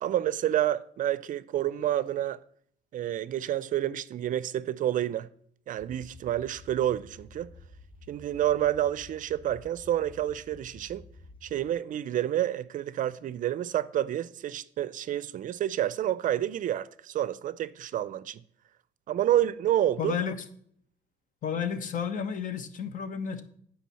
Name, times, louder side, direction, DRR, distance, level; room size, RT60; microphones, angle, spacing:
voice 1, 0.0-2.4 2.9-5.3 5.7-7.5 8.1-11.0 11.4-18.4 19.1-20.1, right 12 dB, 50° right, 0.5 m, -29 dB
sound 1, 5.8-11.7, left 2 dB, 30° left, 1.6 m, -51 dB
voice 2, 20.0-20.4 21.4-23.4, left 7 dB, 50° left, 1.2 m, -32 dB
9.2 x 4.8 x 6.9 m
cardioid pair, 110°, 17 cm